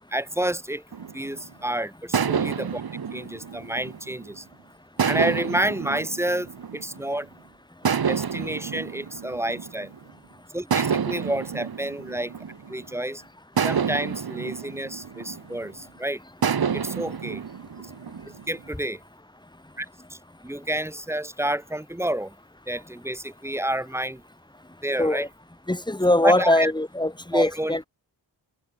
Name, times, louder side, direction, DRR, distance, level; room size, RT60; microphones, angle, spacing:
voice 1, 0.1-0.8 1.1-2.8 3.1-4.4 5.1-7.3 8.1-9.9 10.5-12.3 12.7-13.2 13.6-16.2 16.7-17.4 18.5-19.0 19.8-19.9 20.1-22.4 22.7-24.2 24.8-25.3 26.2-26.7 27.3-27.8, right 1 dB, 5° right, 4.0 m, -29 dB
sound 1, 0.9-1.5 2.1-4.4 5.0-7.2 7.8-10.1 10.7-13.0 13.6-15.8 16.4-18.7, right 7 dB, 55° right, 3.0 m, -29 dB
voice 2, 25.7-27.9, left 1 dB, 10° left, 5.0 m, -22 dB
wide cardioid pair, 105°, 45 cm